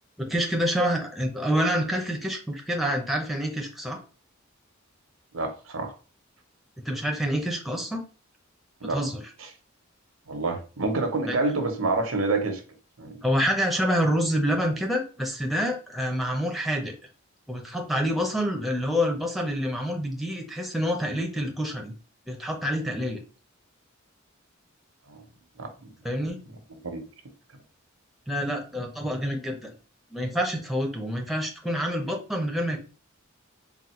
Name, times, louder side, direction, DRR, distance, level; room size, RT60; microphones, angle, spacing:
voice 1, 0.2-4.0 6.8-8.0 8.9-9.2 11.3-11.4 13.2-16.9 17.5-21.9 22.3-23.2 26.0-26.4 28.3-29.7 30.1-32.8, equal, ahead, 0.7 m, -27 dB
voice 2, 5.3-5.9 8.8-9.0 10.3-12.6 13.0-13.2 25.1-25.2 25.6-25.7 26.7-27.0, right 3 dB, 85° right, 1.0 m, -27 dB
3.9 x 2.3 x 4.4 m
head